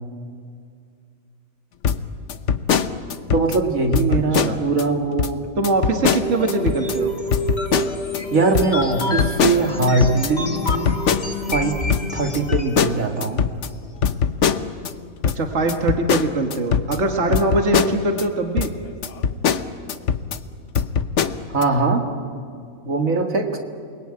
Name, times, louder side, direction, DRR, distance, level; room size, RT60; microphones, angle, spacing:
sound 1, 1.8-3.6 3.9-4.8 5.2-5.3 5.6-7.0 7.3-8.2 8.5-11.6 11.9-14.9 15.2-18.3 18.6-18.7 19.0-20.4 20.7-21.6, left 7 dB, 60° left, 1.2 m, -22 dB
voice 1, 3.3-5.5 8.3-10.9 11.5-11.8 12.1-13.4 17.3-17.4 21.5-22.1 22.8-23.6, right 3 dB, 75° right, 3 dB, 2.5 m, -21 dB
voice 2, 4.1-4.6 5.6-7.1 15.4-18.7, right 2 dB, 60° right, 3 dB, 1.9 m, -22 dB
sound 2, 5.7-12.9, left 1 dB, 30° left, 1.9 m, -28 dB
28.5 x 21.0 x 8.9 m, 2.3 s
omnidirectional pair, 1.4 m